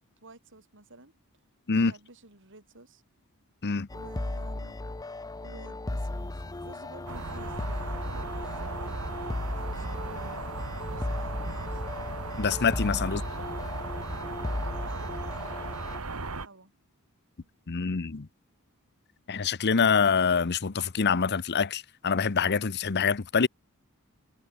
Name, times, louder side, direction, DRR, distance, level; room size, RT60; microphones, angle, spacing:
voice 1, 0.2-1.1 1.8-3.0 3.9-4.8 5.4-10.4 10.8-12.1 13.1-13.9 14.8-15.3 16.1-16.7 17.4-17.5, right 2 dB, 60° right, 7.0 m, -51 dB
sound 1, 3.9-16.0, left 2 dB, 15° left, 0.6 m, -36 dB
sound 2, 7.1-16.5, right 3 dB, 80° right, 2.5 m, -36 dB
voice 2, 12.4-13.2 17.7-18.3 19.3-23.5, left 5 dB, 50° left, 0.8 m, -25 dB
head